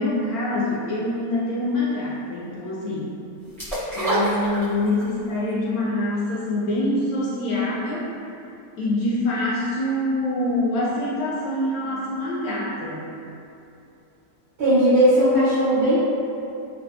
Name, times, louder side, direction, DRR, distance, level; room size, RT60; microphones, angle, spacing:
voice 1, 0.0-3.1 3.9-8.3 8.8-13.1, left 1 dB, 70° left, -7 dB, 0.9 m, -25 dB
sound 1, 3.6-5.1 5.5-5.6, right 1 dB, ahead, 0.6 m, -25 dB
voice 2, 14.6-16.0, equal, 50° right, -12 dB, 1.0 m, -17 dB
3.3 x 2.5 x 2.7 m, 2.7 s
omnidirectional pair, 1.8 m